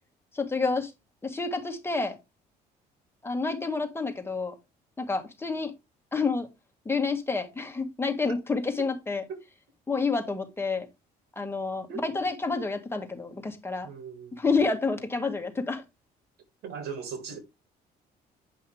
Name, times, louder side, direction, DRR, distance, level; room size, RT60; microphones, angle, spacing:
voice 1, 0.3-0.9 1.2-2.1 3.2-4.5 5.0-5.7 6.1-6.5 6.9-9.2 9.9-10.9 11.4-13.9 14.4-15.8, left 4 dB, 15° left, 1.9 m, -29 dB
voice 2, 13.8-14.4 16.6-17.4, right 6 dB, 70° right, 2.3 m, -38 dB
9.1 x 5.5 x 3.4 m
cardioid pair, 110°, 17 cm